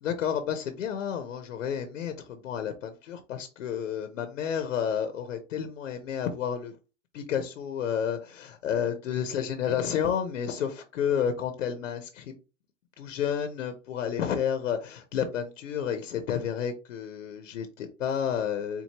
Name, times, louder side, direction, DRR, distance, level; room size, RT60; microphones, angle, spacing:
voice 1, 0.0-6.7 7.1-12.3 13.0-18.8, left 8 dB, 80° left, 0.8 m, -31 dB
4.0 x 2.9 x 2.9 m
supercardioid pair, 175°, 38 cm